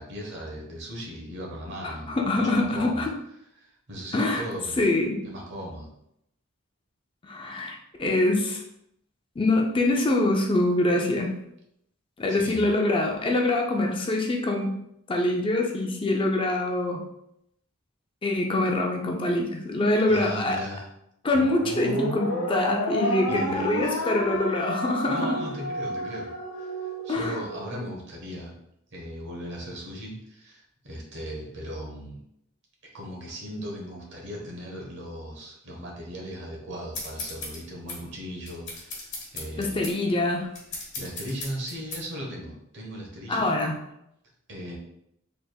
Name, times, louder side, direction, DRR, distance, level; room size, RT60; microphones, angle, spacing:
voice 1, 0.0-3.1 3.6-4.9 5.2-5.9 12.3-12.7 20.1-20.9 23.0-24.0 25.1-26.3 26.6-28.5 28.9-32.2 32.9-39.8 40.7-43.6 44.5-44.8, equal, 60° right, -2 dB, 1.1 m, -37 dB
voice 2, 1.8-3.1 4.1-4.4 4.8-5.2 7.2-8.6 9.4-11.4 12.2-14.7 15.1-17.0 18.2-20.6 21.2-25.4 27.1-27.4 39.6-40.5 43.3-43.8, left 2 dB, 25° left, 1 dB, 0.4 m, -25 dB
sound 1, 21.3-27.9, equal, 80° left, 0.9 m, -31 dB
sound 2, 36.9-42.0, left 2 dB, 55° left, 1.2 m, -38 dB
4.4 x 3.4 x 2.3 m, 0.78 s
head